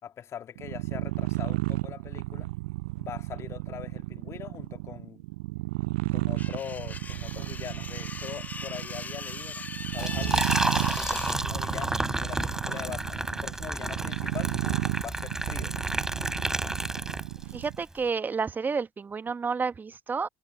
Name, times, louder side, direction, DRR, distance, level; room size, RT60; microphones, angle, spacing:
voice 1, 0.0-2.5 3.0-5.2 6.1-10.5 10.9-14.6 15.0-15.8, left 9 dB, 45° left, 2.3 m, -42 dB
sound 1, 0.6-17.8, right 22 dB, 70° right, 0.5 m, -33 dB
sound 2, 6.4-11.4, left 4 dB, 25° left, 1.2 m, -40 dB
Liquid, 9.9-17.6, right 1 dB, 5° right, 2.9 m, -31 dB
voice 2, 17.5-20.3, right 5 dB, 25° right, 1.2 m, -30 dB
figure-of-eight pair, 60°, 7 cm